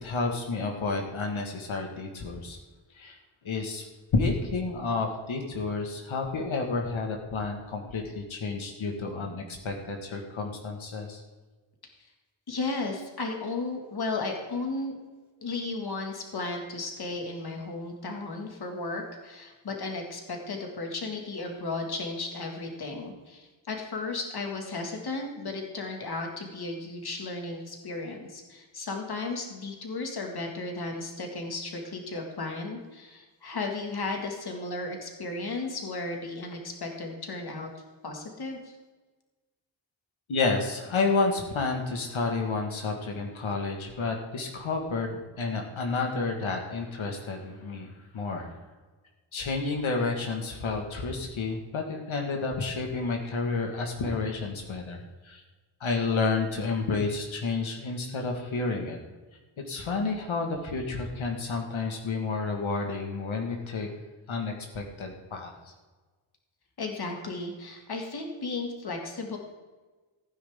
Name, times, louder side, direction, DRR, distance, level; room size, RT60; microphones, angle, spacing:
voice 1, 0.0-2.6 2.9-3.2 3.4-3.8 4.1-11.2 40.3-48.6 49.3-55.4 55.8-59.0 59.7-63.9 64.3-65.5, left 3 dB, 90° left, 2 dB, 1.7 m, -30 dB
voice 2, 12.5-15.0 15.4-37.7 38.0-38.8 66.8-69.4, left 3 dB, 55° left, 2 dB, 2.1 m, -34 dB
16.0 x 9.7 x 3.6 m, 1.3 s
wide cardioid pair, 155°, 46 cm